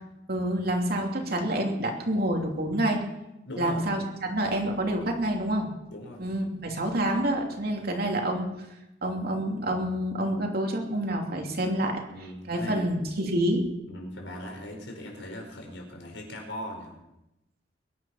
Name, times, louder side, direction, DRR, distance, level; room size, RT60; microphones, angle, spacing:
voice 1, 0.3-3.0 3.6-5.7 6.2-8.5 9.0-12.0 12.5-13.7, right 1 dB, 55° right, 2 dB, 2.9 m, -27 dB
voice 2, 3.4-3.8 5.9-6.2 12.1-12.9 13.9-16.9, left 1 dB, 85° left, 2 dB, 4.9 m, -39 dB
22.5 x 10.5 x 5.7 m, 0.92 s
head